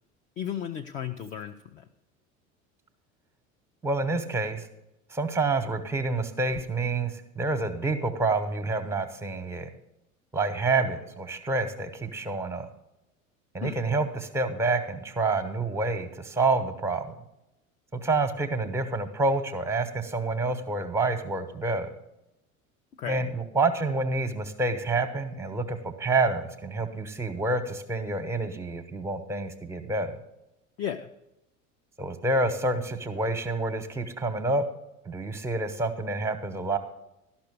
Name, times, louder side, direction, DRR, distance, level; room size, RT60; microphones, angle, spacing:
voice 1, 0.4-1.8 13.6-13.8 23.0-23.3 30.8-31.1, left 9 dB, 20° left, 7 dB, 0.3 m, -34 dB
voice 2, 3.8-4.7 5.1-9.7 10.3-12.7 13.5-17.1 17.9-21.9 23.1-30.2 32.0-34.7 35.0-36.8, right 3 dB, 5° right, 8 dB, 1.0 m, -28 dB
12.5 x 6.0 x 6.4 m, 0.89 s
figure-of-eight pair, 70°, 41 cm